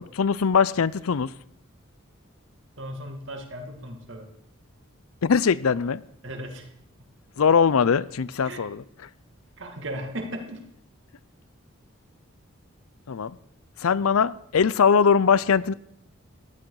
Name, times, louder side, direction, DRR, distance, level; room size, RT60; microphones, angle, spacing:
voice 1, 0.0-1.3 5.2-6.0 7.4-8.8 13.1-13.4 13.8-15.7, left 6 dB, 85° left, 0.5 m, -21 dB
voice 2, 2.8-4.3 6.2-6.7 8.4-8.6 9.6-10.6, right 1 dB, 60° right, 2.1 m, -36 dB
15.0 x 11.0 x 4.8 m
head